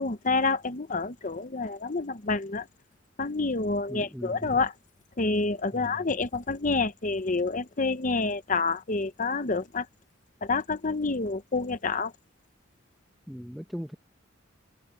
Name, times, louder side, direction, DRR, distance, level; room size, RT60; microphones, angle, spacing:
voice 1, 0.0-2.7 3.2-4.7 5.2-9.9 10.4-12.1, left 3 dB, 40° left, 1.0 m, -28 dB
voice 2, 3.9-4.6 5.7-6.0 13.3-14.0, equal, ahead, 1.0 m, -39 dB
head